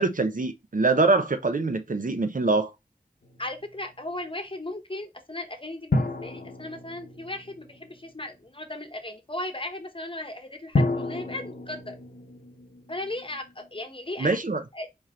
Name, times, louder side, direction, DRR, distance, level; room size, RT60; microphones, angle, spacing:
voice 1, 0.0-2.7 14.2-14.6, right 3 dB, 60° right, 0.6 m, -24 dB
sound 1, 3.2-4.1 5.9-8.3 10.7-13.8, left 2 dB, 70° left, 0.8 m, -31 dB
voice 2, 3.4-12.0 12.9-14.4 14.7-14.9, left 1 dB, 35° left, 1.0 m, -36 dB
4.4 x 3.1 x 3.7 m
wide cardioid pair, 50°, 16 cm